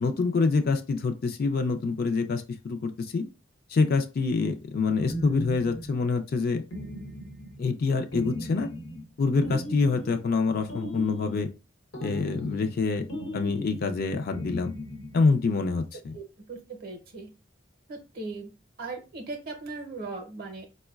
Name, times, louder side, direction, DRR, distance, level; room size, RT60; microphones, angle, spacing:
voice 1, 0.0-3.2 3.7-6.6 7.6-8.7 9.2-11.5 12.0-13.1 13.3-14.7 15.1-16.2, left 4 dB, 50° left, 0.4 m, -26 dB
sound 1, 5.1-6.0 6.7-7.6 8.1-9.1 9.4-10.2 10.7-11.5 11.9-12.8 13.1-14.0 14.3-15.3, equal, 85° left, 1.0 m, -37 dB
voice 2, 16.5-17.3 17.9-18.5 18.8-20.7, right 3 dB, 50° right, 0.6 m, -38 dB
4.3 x 2.1 x 2.3 m
head